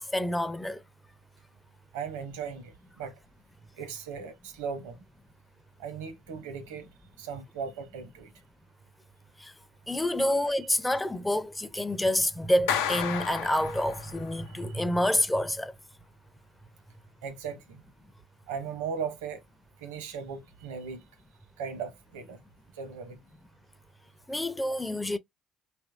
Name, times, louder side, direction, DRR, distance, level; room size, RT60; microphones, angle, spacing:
voice 1, 0.1-0.8 9.4-9.5 9.9-15.7 24.3-25.2, left 1 dB, 10° left, 0.4 m, -28 dB
voice 2, 1.9-3.1 3.8-5.0 5.8-6.9 7.2-8.3 10.2-10.3 14.5-14.6 17.2-17.8 18.5-19.4 19.8-21.0 21.6-22.4 22.8-23.2 24.7-24.8 25.0-25.1, right 6 dB, 80° right, 0.7 m, -37 dB
Clapping, 12.7-14.3, left 8 dB, 80° left, 0.4 m, -31 dB
2.8 x 2.6 x 2.3 m
hypercardioid pair, 60°, 0 cm